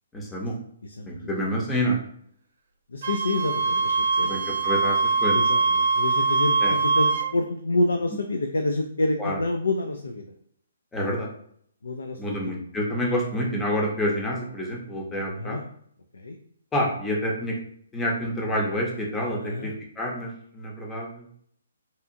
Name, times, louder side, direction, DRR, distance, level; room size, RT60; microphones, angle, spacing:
voice 1, 0.1-0.6 1.1-2.0 4.3-5.4 6.6-6.7 9.2-9.4 10.9-11.3 12.2-15.6 16.7-17.6 17.9-21.3, equal, 10° left, -2 dB, 0.7 m, -28 dB
voice 2, 0.8-1.2 2.9-4.5 5.3-10.3 11.8-12.5 15.2-15.6 16.1-16.4 19.4-19.7, left 2 dB, 85° left, 4 dB, 0.3 m, -28 dB
Wind instrument woodwind instrument, 3.0-7.3, right 4 dB, 65° right, 0.5 m, -23 dB
2.7 x 2.3 x 2.5 m, 0.66 s
hypercardioid pair, 140°, 0 cm